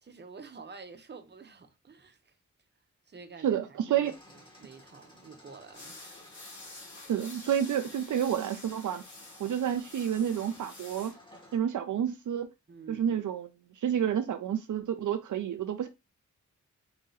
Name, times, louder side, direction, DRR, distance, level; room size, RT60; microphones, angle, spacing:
voice 1, 0.0-2.4 3.1-6.1 12.7-13.3, right 4 dB, 35° right, 0.7 m, -49 dB
voice 2, 3.4-4.1 7.1-9.0 9.4-11.1 11.5-12.5 12.9-13.5 13.8-15.9, right 9 dB, 80° right, 0.5 m, -29 dB
sound 1, 4.0-11.6, left 1 dB, 15° left, 1.4 m, -57 dB
sound 2, 5.7-11.2, left 2 dB, 70° left, 2.2 m, -48 dB
3.9 x 2.7 x 3.8 m
wide cardioid pair, 135°, 30 cm